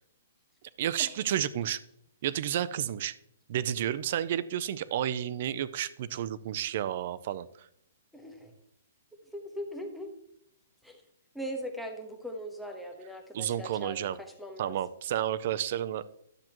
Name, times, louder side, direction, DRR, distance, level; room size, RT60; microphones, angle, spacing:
voice 1, 0.8-1.8 2.2-3.1 3.5-7.5 13.3-14.2 14.6-16.1, right 11 dB, 40° right, 16 dB, 0.4 m, -31 dB
voice 2, 8.1-8.5 9.3-10.1 10.8-11.0 11.3-14.8, equal, ahead, 1 dB, 0.9 m, -40 dB
12.0 x 7.6 x 3.0 m, 0.73 s
hypercardioid pair, 175°, 0 cm